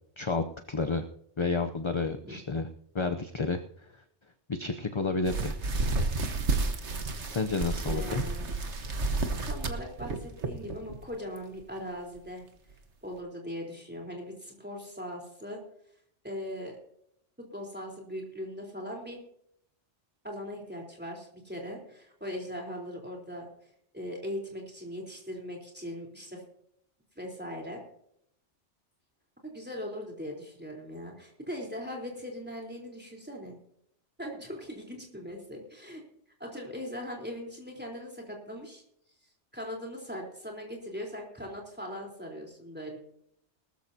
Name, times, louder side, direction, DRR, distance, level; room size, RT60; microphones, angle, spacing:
voice 1, 0.2-1.0 1.4-2.7 2.9-3.6 4.5-5.6 7.3-8.2, left 3 dB, 30° left, 7 dB, 0.6 m, -30 dB
sound 1, 5.3-11.0 11.4-11.6 12.2-12.3 12.7-12.8, right 3 dB, 75° right, 1.7 m, -31 dB
voice 2, 7.8-8.6 9.3-12.5 13.0-15.6 16.2-16.8 17.5-19.2 20.2-23.5 23.9-26.4 27.2-27.8 29.4-33.6 34.2-36.0 36.4-38.8 39.5-43.0, equal, 10° right, 0 dB, 3.7 m, -40 dB
19.0 x 13.5 x 2.8 m, 0.71 s
omnidirectional pair, 1.2 m